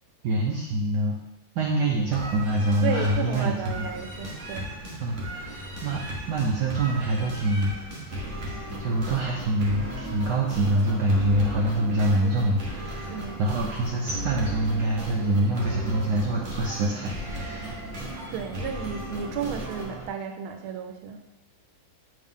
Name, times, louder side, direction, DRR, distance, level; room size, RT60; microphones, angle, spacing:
voice 1, 0.2-1.2 1.6-3.9 5.0-7.7 8.8-17.8, right 1 dB, 65° right, -2 dB, 1.2 m, -25 dB
sound 1, 2.1-20.1, right 1 dB, 40° right, 1.2 m, -36 dB
voice 2, 2.8-4.7 13.1-13.4 18.3-21.2, right 7 dB, 85° right, 5 dB, 1.5 m, -33 dB
8.5 x 3.3 x 3.6 m, 0.94 s
omnidirectional pair, 2.2 m